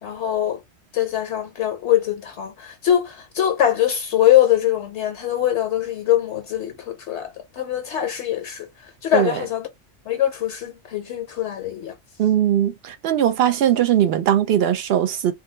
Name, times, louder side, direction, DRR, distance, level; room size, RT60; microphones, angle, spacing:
voice 1, 0.0-0.6 0.9-8.7 9.0-9.7 10.1-11.9, left 11 dB, 70° left, 0.9 m, -22 dB
voice 2, 12.2-15.3, right 10 dB, 60° right, 0.8 m, -20 dB
3.3 x 2.2 x 3.1 m
omnidirectional pair, 1.3 m